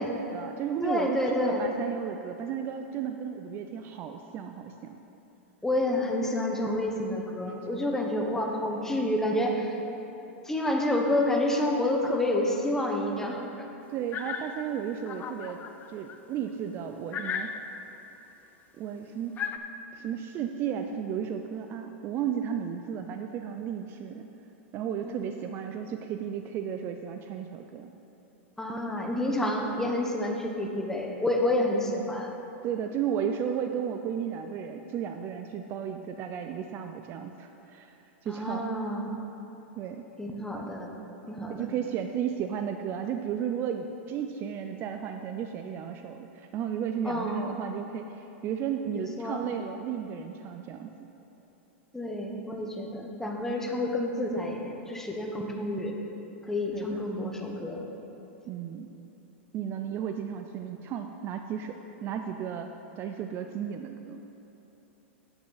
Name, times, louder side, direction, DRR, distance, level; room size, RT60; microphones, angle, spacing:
voice 1, 0.0-5.0 13.9-15.6 15.9-17.5 18.8-19.4 19.9-24.3 24.7-27.9 32.6-37.9 38.2-38.7 39.8-40.0 41.5-51.1 56.7-57.0 58.5-58.9 59.5-62.7 63.0-64.3, right 8 dB, 35° right, 6 dB, 0.4 m, -34 dB
voice 2, 0.8-1.7 5.6-9.8 10.4-13.6 25.0-25.3 28.6-32.3 38.3-39.2 40.2-40.9 41.3-41.7 47.0-47.7 49.0-49.5 51.9-55.9 56.4-57.9, left 1 dB, 5° left, 1 dB, 1.0 m, -29 dB
sound 1, 14.1-16.2 16.7-16.8 17.1-18.0 19.4-19.6, left 7 dB, 25° left, 0.4 m, -36 dB
8.7 x 8.4 x 4.0 m, 3.0 s
supercardioid pair, 135°, 7 cm